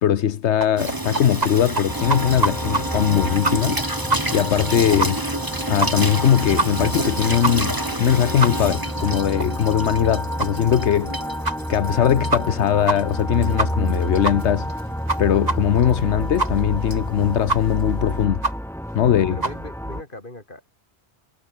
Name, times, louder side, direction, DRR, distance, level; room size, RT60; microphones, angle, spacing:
voice 1, 0.0-5.2 5.7-11.2 11.7-14.7 15.2-18.5 18.9-19.4, left 9 dB, 85° left, 1.1 m, -20 dB
sound 1, 0.6-1.5 1.8-1.9 2.1-2.8 3.1-3.2 3.4-3.8 4.1-4.2 4.5-4.6 5.0-5.1 5.4-5.5 5.8-6.2 6.6-6.7 7.0-7.1 7.4-7.5 7.9-8.0 8.4-8.5 8.9-9.0 9.4-9.5 9.9-10.0 10.4-10.5 10.9-11.0 11.4-11.6 11.9-12.0 12.3-12.6 12.9-13.0 13.2-13.3 13.6-13.9 14.2-14.4 14.7-14.8 15.1-15.2 15.5-15.6 15.9-16.0 16.4-16.5 16.9-17.0 17.5-17.6 17.9-18.0 18.4-18.5 18.9-19.0 19.4-19.5, right 3 dB, 40° right, 2.3 m, -23 dB
Water tap faucet / Sink (filling or washing), 0.8-18.2, right 1 dB, 20° right, 2.4 m, -30 dB
sound 2, 1.9-20.0, equal, ahead, 4.1 m, -29 dB
voice 2, 19.3-20.7, left 2 dB, 50° left, 4.8 m, -38 dB
omnidirectional pair, 1.1 m